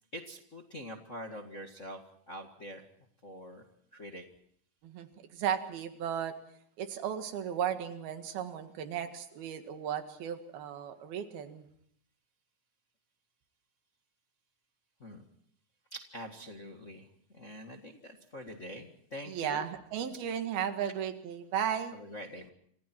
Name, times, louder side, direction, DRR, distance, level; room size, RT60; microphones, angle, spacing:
voice 1, 0.1-2.9 3.2-3.6 3.9-4.2 15.0-15.2 15.9-17.1 17.3-19.7 21.9-22.5, equal, 35° left, 3 dB, 1.2 m, -45 dB
voice 2, 4.8-6.3 6.8-11.7 19.3-22.0, right 9 dB, 85° right, 7 dB, 3.7 m, -35 dB
28.5 x 27.0 x 4.5 m, 0.65 s
omnidirectional pair, 4.3 m